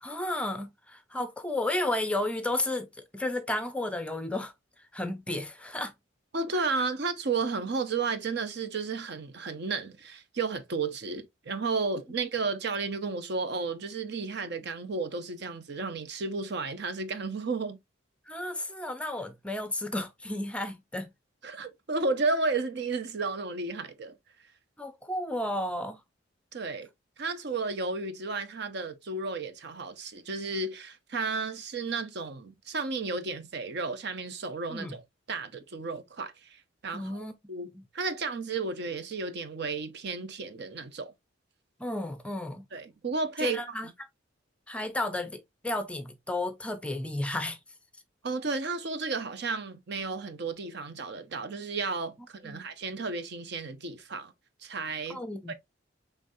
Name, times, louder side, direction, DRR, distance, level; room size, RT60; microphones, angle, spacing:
voice 1, 0.0-2.9 3.1-4.5 4.9-5.9 6.5-6.6 18.3-21.1 24.8-26.0 34.7-35.0 36.9-37.3 37.7-37.8 41.8-42.6 43.4-43.9 44.7-47.6 52.4-52.6 55.1-55.5, left 1 dB, 5° left, 0.5 m, -33 dB
voice 2, 6.3-17.8 21.4-24.1 26.5-26.9 27.2-35.0 35.3-37.7 37.9-41.1 42.7-43.6 48.2-54.3 54.6-55.2 55.5-55.6, right 4 dB, 60° right, 0.7 m, -33 dB
5.1 x 3.2 x 2.6 m
head